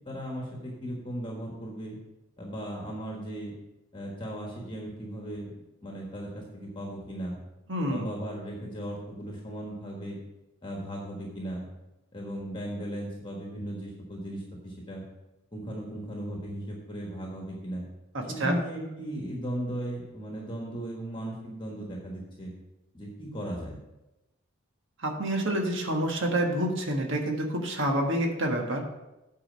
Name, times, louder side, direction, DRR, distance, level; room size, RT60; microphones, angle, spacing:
voice 1, 0.0-2.0 2.4-3.5 3.9-5.5 5.8-7.4 7.9-10.2 10.6-11.7 12.1-15.0 15.5-17.8 18.3-22.5 22.9-23.8, right 1 dB, 25° left, -2 dB, 1.4 m, -37 dB
voice 2, 7.7-8.1 18.1-18.6 25.0-28.8, right 1 dB, 60° right, 2 dB, 1.5 m, -28 dB
8.8 x 4.9 x 6.2 m, 0.97 s
head